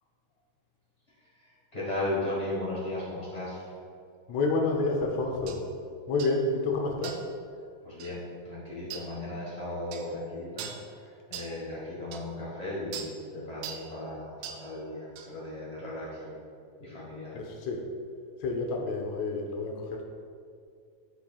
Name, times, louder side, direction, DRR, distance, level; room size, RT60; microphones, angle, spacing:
voice 1, 1.4-3.6 7.8-10.7 11.3-16.4 16.8-17.4, left 1 dB, 50° left, -7 dB, 0.4 m, -36 dB
voice 2, 4.3-5.6 6.1-7.1 17.3-17.9 18.4-20.0, left 3 dB, 70° left, 1 dB, 1.8 m, -29 dB
sound 1, 5.5-5.6 6.2-6.4 7.0-7.3 8.0-8.2 8.9-9.1 9.9-10.1 10.6-10.8 11.3-11.5 12.1-12.2 12.9-13.1 13.6-13.9 14.4-14.6 15.2-15.3, right 8 dB, 80° right, 1.7 m, -40 dB
13.5 x 4.9 x 2.4 m, 2.3 s
omnidirectional pair, 3.7 m